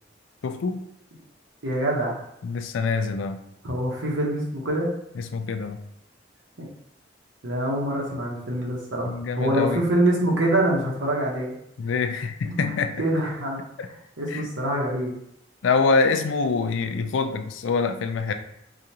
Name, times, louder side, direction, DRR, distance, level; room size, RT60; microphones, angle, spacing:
voice 1, 0.4-0.8 2.4-3.4 5.2-5.8 9.0-9.8 11.8-12.9 13.8-13.9 14.3-14.5 15.6-18.3, left 4 dB, 85° left, 8 dB, 0.4 m, -25 dB
voice 2, 1.6-2.2 3.6-4.9 7.4-11.5 12.5-13.6 14.2-15.1, right 1 dB, 90° right, -2 dB, 1.1 m, -25 dB
4.9 x 2.4 x 2.8 m, 0.77 s
head